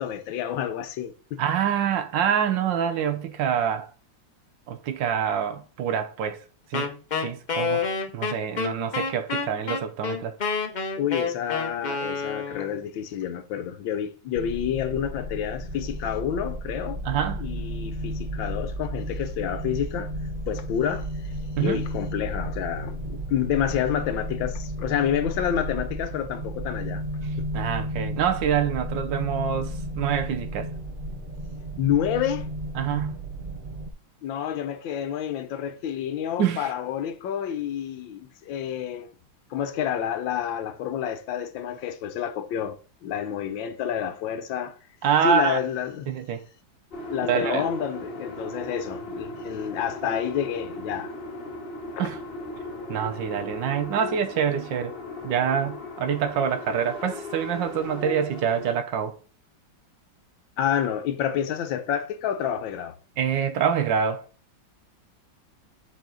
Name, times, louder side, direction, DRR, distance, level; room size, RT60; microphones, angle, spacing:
voice 1, 0.0-1.4 11.0-17.0 17.4-20.1 20.5-21.1 21.6-27.0 27.4-27.5 31.8-32.5 34.2-39.1 39.5-42.8 43.0-44.8 45.2-46.1 47.1-51.1 60.6-63.0, left 9 dB, 80° left, 1.5 m, -29 dB
voice 2, 1.4-3.9 4.7-6.4 6.7-6.9 7.2-7.8 8.1-10.3 17.0-17.4 21.6-21.8 27.5-30.7 32.8-33.2 36.4-36.7 45.0-45.6 46.1-46.4 47.3-47.7 52.0-52.2 52.9-55.0 55.2-59.2 63.2-64.2, right 8 dB, 70° right, 1.5 m, -26 dB
Wind instrument woodwind instrument, 6.7-12.8, left 5 dB, 60° left, 0.4 m, -28 dB
sound 1, 14.3-33.9, equal, 90° right, 0.4 m, -33 dB
sound 2, 46.9-58.8, left 2 dB, 35° left, 1.3 m, -37 dB
7.2 x 4.5 x 3.8 m
omnidirectional pair, 2.1 m